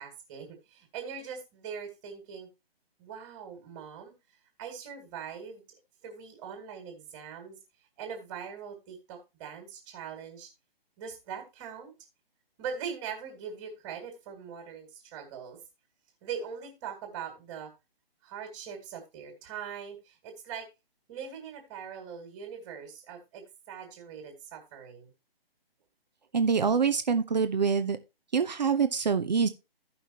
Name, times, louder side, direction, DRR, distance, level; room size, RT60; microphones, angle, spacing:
voice 1, 0.0-2.5 3.0-4.1 4.6-5.6 6.0-7.6 8.0-10.5 11.0-11.9 12.6-15.6 16.2-17.7 18.2-20.7 21.1-25.1, right 7 dB, 20° right, 2.2 m, -41 dB
voice 2, 26.3-28.0 28.3-29.5, right 6 dB, 45° right, 0.8 m, -25 dB
15.0 x 5.6 x 2.8 m
figure-of-eight pair, 140°, 30 cm